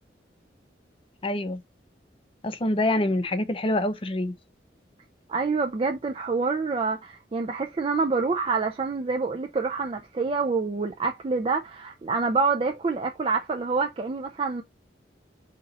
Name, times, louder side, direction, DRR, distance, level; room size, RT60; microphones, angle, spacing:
voice 1, 1.2-1.6 2.4-4.3, left 1 dB, 30° left, 0.5 m, -26 dB
voice 2, 5.3-14.6, right 4 dB, 30° right, 0.4 m, -27 dB
4.0 x 2.9 x 4.0 m
head